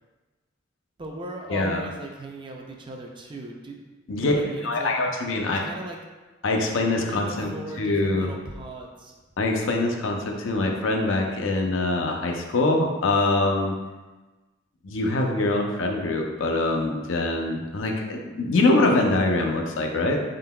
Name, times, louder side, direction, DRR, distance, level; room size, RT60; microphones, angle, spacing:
voice 1, 1.0-3.8 4.2-4.9 5.5-6.0 7.0-9.2, right 2 dB, 25° right, 1 dB, 0.4 m, -38 dB
voice 2, 1.5-1.9 4.1-4.3 4.6-5.6 6.4-7.5 7.8-8.3 9.4-13.8 14.8-20.2, left 2 dB, 70° left, 2 dB, 0.5 m, -24 dB
4.3 x 3.8 x 2.2 m, 1.2 s
head